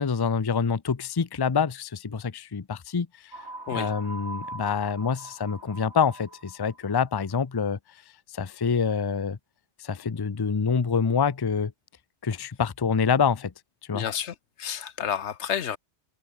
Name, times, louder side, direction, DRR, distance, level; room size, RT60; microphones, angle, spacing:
voice 1, 0.0-3.3 3.7-7.8 8.3-9.4 9.8-11.7 12.2-13.5 13.9-14.1, left 6 dB, 25° left, 0.6 m, -26 dB
sound 1, 3.3-6.9, right 2 dB, 70° right, 5.5 m, -41 dB
voice 2, 13.9-15.8, left 9 dB, 75° left, 1.2 m, -31 dB
omnidirectional pair, 1.2 m